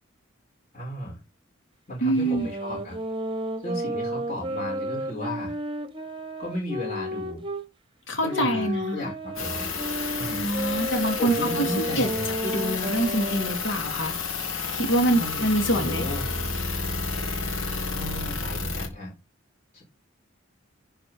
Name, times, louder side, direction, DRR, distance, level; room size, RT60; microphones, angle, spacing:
voice 1, 0.7-1.2 1.9-3.0 3.6-5.6 6.4-7.4 8.2-9.7 10.2-10.5 11.1-12.3 15.1-16.3 17.9-19.1 19.7-19.8, left 1 dB, 35° left, 5.3 m, -35 dB
voice 2, 2.0-2.5 8.1-9.1 10.3-12.1 12.4-14.2 14.7-16.1, right 1 dB, 60° left, 3.0 m, -25 dB
sound 1, 2.2-7.7 8.3-13.6, right 1 dB, 25° right, 1.2 m, -32 dB
sound 2, 9.4-18.9, left 4 dB, 85° left, 3.1 m, -31 dB
11.5 x 5.0 x 5.2 m
head